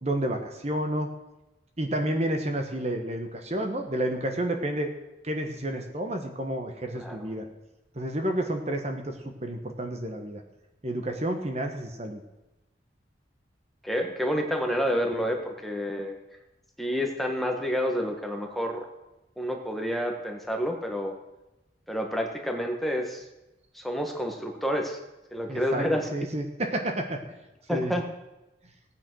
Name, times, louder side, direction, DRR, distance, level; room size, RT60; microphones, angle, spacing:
voice 1, 0.0-1.1 1.8-4.9 5.2-7.5 7.9-9.1 9.4-10.4 10.8-12.2 25.5-25.9 26.1-27.2 27.7-27.9, right 1 dB, 35° right, 5 dB, 1.2 m, -30 dB
voice 2, 13.8-16.1 16.8-18.9 19.4-21.1 21.9-23.2 23.7-25.0 25.3-26.1 27.7-28.0, equal, ahead, 2 dB, 1.5 m, -29 dB
16.5 x 9.2 x 6.3 m, 0.99 s
head